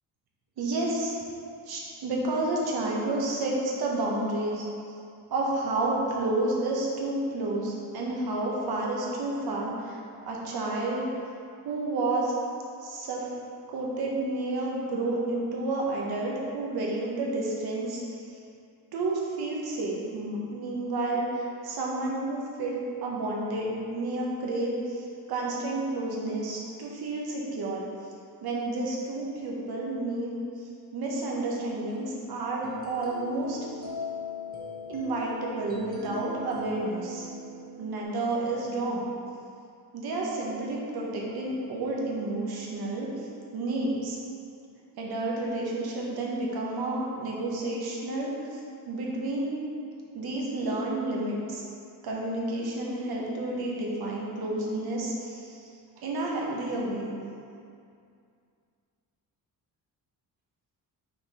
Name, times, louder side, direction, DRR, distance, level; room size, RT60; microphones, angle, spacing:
voice 1, 0.6-1.1 1.7-4.7 5.3-10.0 10.3-11.1 11.6-12.3 12.8-13.3 13.7-18.4 18.9-27.9 28.4-30.3 30.9-33.6 34.9-37.3 37.8-39.1 39.9-44.2 45.0-49.6 50.1-51.6 52.0-55.7 56.0-57.1, right 2 dB, 75° right, -3 dB, 1.2 m, -30 dB
sound 1, 31.6-38.0, left 2 dB, 25° right, 1.0 m, -40 dB
5.7 x 4.0 x 4.2 m, 2.4 s
cardioid pair, 115°, 38 cm